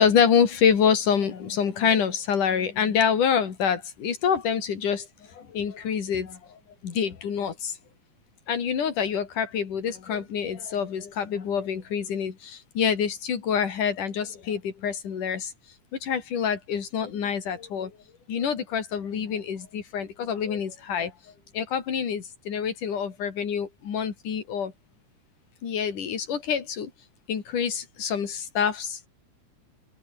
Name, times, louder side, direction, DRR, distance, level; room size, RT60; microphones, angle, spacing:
voice 1, 0.0-7.8 8.5-15.5 15.9-18.0 18.3-21.1 21.5-24.7 25.6-26.9 27.3-29.1, left 7 dB, 85° left, 4.6 m, -26 dB
omnidirectional pair, 3.5 m